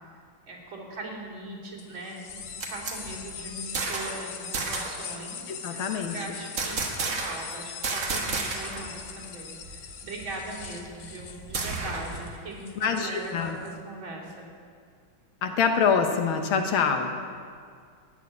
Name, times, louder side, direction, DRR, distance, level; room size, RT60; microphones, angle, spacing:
voice 1, 0.5-5.8 6.1-14.5 16.7-17.1, right 2 dB, 75° right, -6 dB, 4.2 m, -40 dB
sound 1, 1.8-13.7, left 7 dB, 60° left, 1.3 m, -42 dB
sound 2, 2.3-4.2 4.5-5.0 6.6-7.5 7.8-8.9 9.2-9.3 9.6-12.2, right 3 dB, 45° right, 1.7 m, -32 dB
voice 2, 5.5-6.1 12.8-13.6 15.4-17.1, left 6 dB, 85° left, 5 dB, 1.9 m, -25 dB
13.5 x 7.0 x 9.7 m, 2.1 s
omnidirectional pair, 2.2 m